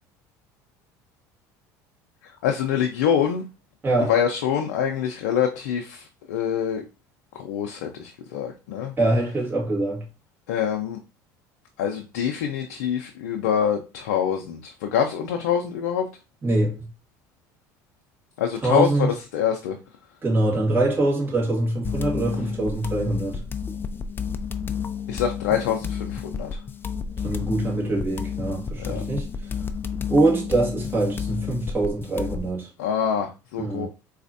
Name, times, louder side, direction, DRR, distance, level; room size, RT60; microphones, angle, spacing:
voice 1, 2.4-3.4 4.1-6.8 7.3-8.9 10.5-11.0 11.8-16.1 18.4-19.8 25.1-26.6 28.8-29.0 32.8-33.9, left 8 dB, 85° left, 0.5 m, -25 dB
voice 2, 3.8-4.2 9.0-10.1 16.4-16.9 18.6-19.1 20.2-23.4 27.2-29.3 30.1-32.7 33.6-33.9, right 2 dB, 25° right, 1.5 m, -24 dB
sound 1, 21.8-32.5, left 6 dB, 25° left, 0.4 m, -31 dB
4.1 x 2.4 x 2.6 m
supercardioid pair, 85°, 9 cm